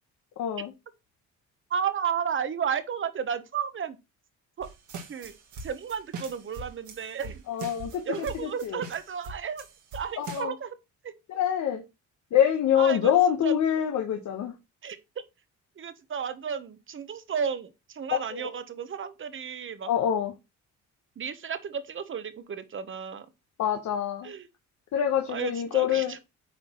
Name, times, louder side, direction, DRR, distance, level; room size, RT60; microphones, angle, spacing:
voice 1, 0.4-0.7 7.5-8.0 8.4-8.8 10.2-10.5 11.3-11.8 12.3-14.5 18.1-18.4 19.9-20.3 23.6-24.3 24.9-26.2, left 9 dB, 70° left, 1.0 m, -25 dB
voice 2, 1.7-4.0 4.6-4.7 5.1-5.3 5.6-7.4 8.0-9.7 9.9-10.8 11.0-11.1 12.7-13.1 13.4-13.5 14.8-15.0 15.8-19.9 21.2-23.3 24.2-24.5 25.3-26.2, right 7 dB, 40° right, 1.0 m, -33 dB
sound 1, 4.6-10.4, right 3 dB, 80° right, 1.8 m, -42 dB
8.5 x 4.4 x 2.9 m
cardioid pair, 90°, 30 cm